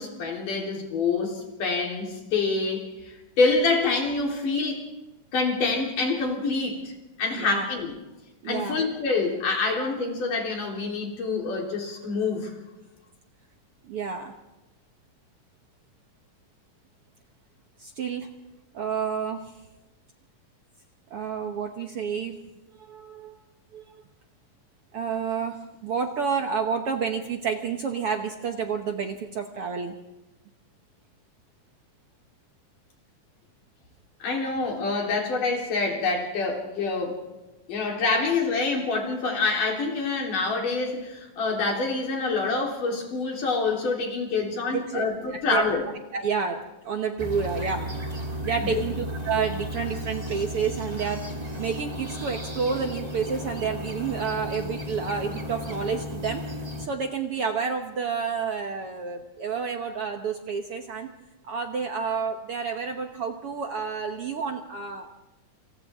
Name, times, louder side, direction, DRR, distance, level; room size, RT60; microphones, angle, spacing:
voice 1, 0.0-4.9 5.3-6.9 7.2-8.0 8.5-12.5 34.2-37.2 37.7-45.9 48.6-48.9, left 3 dB, 75° left, 0 dB, 5.3 m, -26 dB
voice 2, 7.3-7.7 8.4-8.8 13.9-14.3 17.8-18.3 18.7-19.4 21.1-22.4 22.8-23.3 23.7-23.8 24.9-25.6 25.8-29.9 44.7-45.6 46.1-47.9 48.4-51.2 51.6-56.5 56.8-61.1 61.4-65.2, right 6 dB, 60° right, 4 dB, 1.6 m, -29 dB
sound 1, 47.2-56.9, equal, 20° right, 1.1 m, -34 dB
28.0 x 27.5 x 3.6 m, 1.0 s
omnidirectional pair, 3.8 m